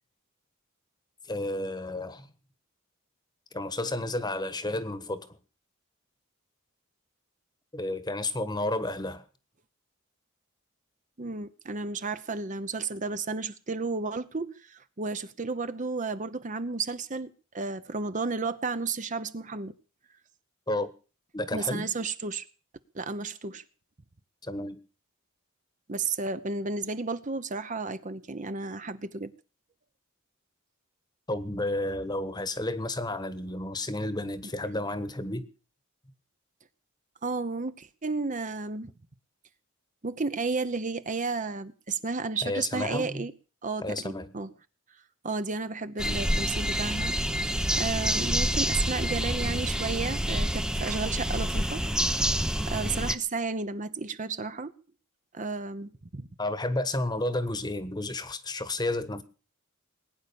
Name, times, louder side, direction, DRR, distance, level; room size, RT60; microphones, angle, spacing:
voice 1, 1.3-2.3 3.5-5.4 7.7-9.2 20.7-20.9 21.3-21.9 24.4-24.8 31.3-35.4 42.4-43.3 43.8-44.3 56.4-59.2, left 1 dB, 20° left, 1.3 m, -31 dB
voice 2, 11.2-19.7 21.5-22.4 22.9-23.6 25.9-29.3 37.2-38.9 40.0-43.3 43.6-44.5 45.2-47.1 47.7-51.8 52.7-54.7 55.3-56.3, right 4 dB, 35° right, 0.9 m, -32 dB
sound 1, 46.0-53.1, equal, 5° right, 0.7 m, -28 dB
20.0 x 9.8 x 7.0 m
head